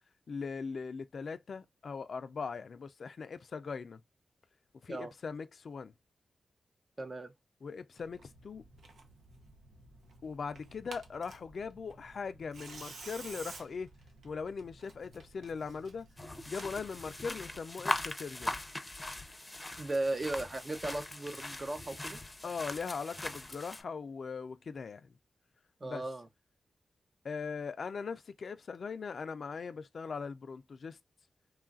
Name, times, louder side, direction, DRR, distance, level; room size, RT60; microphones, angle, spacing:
voice 1, 0.3-4.0 4.8-5.9 7.6-8.6 10.2-13.9 14.2-16.1 16.5-18.6 22.4-25.2 25.8-26.1 27.2-31.0, left 5 dB, 70° left, 0.3 m, -40 dB
voice 2, 7.0-7.3 19.8-22.2 25.8-26.3, right 2 dB, 40° right, 0.6 m, -36 dB
Tearing, 8.0-17.6, right 3 dB, 90° right, 0.7 m, -53 dB
sound 1, 16.2-23.8, left 2 dB, 20° left, 0.6 m, -40 dB
3.1 x 2.3 x 2.4 m
cardioid pair, 55°, 0 cm